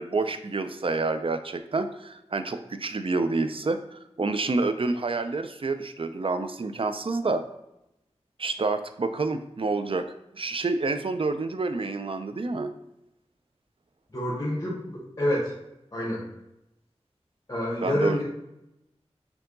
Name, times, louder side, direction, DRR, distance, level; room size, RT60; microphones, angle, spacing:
voice 1, 0.0-7.4 8.4-10.1 10.3-12.7 17.8-18.2, right 3 dB, 55° right, 9 dB, 0.4 m, -28 dB
voice 2, 14.1-15.5 15.9-16.2 17.5-18.2, left 1 dB, 30° left, -7 dB, 1.3 m, -27 dB
4.4 x 2.8 x 3.9 m, 0.87 s
wide cardioid pair, 60°, 11 cm